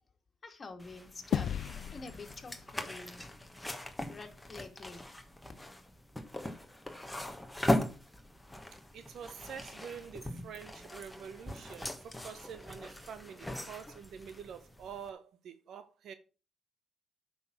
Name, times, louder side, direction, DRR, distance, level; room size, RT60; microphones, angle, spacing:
voice 1, 0.4-1.5 1.9-3.3 4.1-5.1, left 3 dB, 35° left, 2.4 m, -47 dB
sound 1, 0.8-15.1, left 1 dB, 5° left, 1.4 m, -39 dB
sound 2, 1.3-3.9, left 9 dB, 70° left, 0.5 m, -37 dB
voice 2, 8.9-16.1, right 7 dB, 70° right, 1.0 m, -47 dB
9.1 x 6.1 x 6.1 m
cardioid pair, 90°, 0 cm